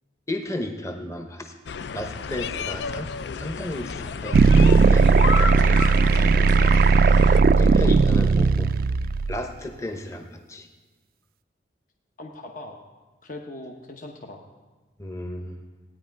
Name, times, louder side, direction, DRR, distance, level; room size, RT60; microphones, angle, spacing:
voice 1, 0.3-1.5 1.9-3.1 3.4-5.1 7.6-8.7 9.3-10.7 15.0-15.6, left 1 dB, 15° left, 5 dB, 0.9 m, -33 dB
sound 1, 1.7-7.4, left 5 dB, 65° left, 0.4 m, -32 dB
voice 2, 2.7-3.4 5.4-6.8 12.2-12.8 13.2-14.4, left 2 dB, 45° left, 1 dB, 0.9 m, -40 dB
sound 2, 4.3-9.4, right 4 dB, 50° right, 0.3 m, -17 dB
17.0 x 9.8 x 4.6 m, 1.3 s
head